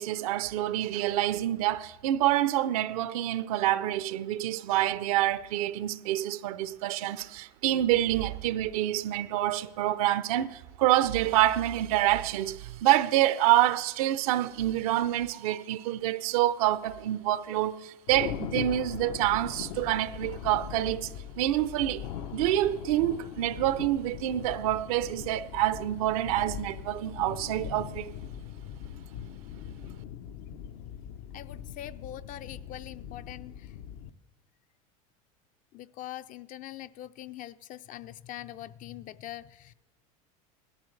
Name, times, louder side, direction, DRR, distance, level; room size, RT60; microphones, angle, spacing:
voice 1, 0.0-21.1 21.4-22.1 22.3-28.1, right 14 dB, 75° right, 0.7 m, -27 dB
Thunder, 18.1-34.1, left 9 dB, 70° left, 0.8 m, -40 dB
voice 2, 31.3-33.7 35.7-39.7, left 13 dB, 45° left, 0.5 m, -43 dB
17.5 x 13.0 x 3.3 m
supercardioid pair, 95°, 19 cm